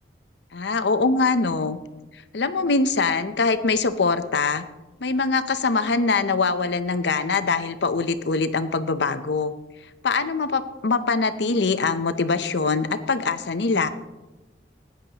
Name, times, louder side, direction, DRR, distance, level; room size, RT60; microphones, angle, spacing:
voice 1, 0.5-1.8 2.1-4.6 5.0-9.5 10.0-13.9, left 4 dB, 70° left, 11 dB, 0.7 m, -23 dB
15.5 x 9.9 x 2.9 m, 1.1 s
head